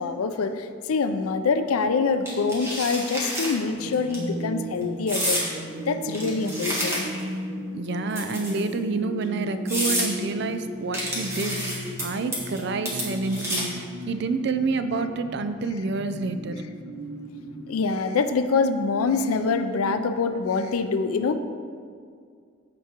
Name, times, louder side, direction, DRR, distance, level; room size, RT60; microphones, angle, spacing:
voice 1, 0.0-5.6 5.9-7.0 17.7-21.4, left 4 dB, 90° left, 9 dB, 0.5 m, -25 dB
sound 1, 2.3-3.5 3.9-4.2 5.1-5.5 6.1-7.3 8.1-8.7 9.2-9.3 9.7-10.1 10.9-12.0 12.3-12.6 12.9-13.8, equal, 10° right, 1.4 m, -29 dB
sound 2, 3.7-17.7, equal, 75° right, 1.5 m, -36 dB
voice 2, 7.7-16.6, right 4 dB, 50° right, 9 dB, 0.4 m, -28 dB
14.0 x 4.7 x 2.9 m, 2.2 s
head